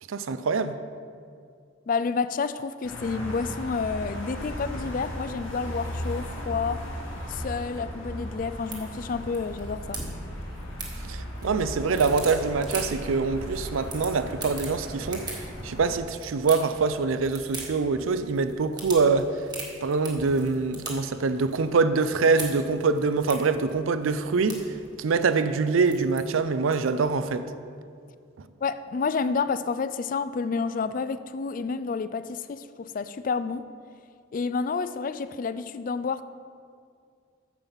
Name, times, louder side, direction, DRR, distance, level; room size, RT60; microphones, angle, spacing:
voice 1, 0.1-0.8 11.0-19.3 19.8-24.6 25.0-27.5, right 4 dB, 80° right, 12 dB, 0.5 m, -24 dB
voice 2, 1.9-6.8 7.3-10.0 28.6-33.6 34.3-36.2, left 5 dB, 40° left, 14 dB, 0.3 m, -29 dB
sound 1, 2.8-16.0, equal, 80° left, 2.2 m, -37 dB
sound 2, 7.7-27.1, right 3 dB, 20° right, 1.3 m, -42 dB
9.1 x 7.1 x 5.7 m, 2.2 s
head